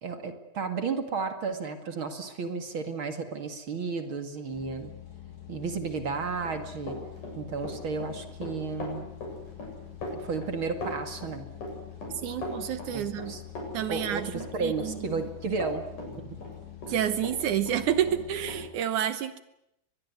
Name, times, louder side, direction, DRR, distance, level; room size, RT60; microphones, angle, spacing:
voice 1, 0.0-4.9 5.5-7.0 7.3-9.1 10.1-11.5 12.9-13.4 13.9-16.4, right 4 dB, 40° right, 7 dB, 2.3 m, -33 dB
sound 1, 4.5-18.7, left 12 dB, 25° left, 2.6 m, -46 dB
Run, 6.2-17.4 17.7-18.6, left 1 dB, 50° left, 9.3 m, -39 dB
voice 2, 12.1-13.3 13.7-15.2 16.9-19.4, right 10 dB, 65° right, 12 dB, 2.1 m, -29 dB
24.5 x 21.0 x 9.5 m, 0.82 s
omnidirectional pair, 4.5 m